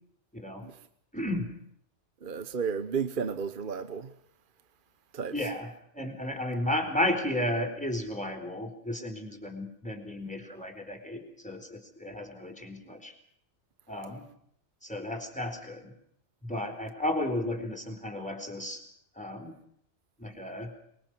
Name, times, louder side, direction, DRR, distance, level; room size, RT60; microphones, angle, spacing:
voice 1, 0.3-0.7 1.1-1.5 5.3-13.1 13.9-14.3 14.8-15.9 16.4-18.8 19.2-19.6 20.2-20.7, left 1 dB, 5° left, 4.1 m, -33 dB
voice 2, 2.2-4.1 5.1-5.3, right 6 dB, 50° right, 1.2 m, -32 dB
24.5 x 24.0 x 6.2 m
omnidirectional pair, 1.2 m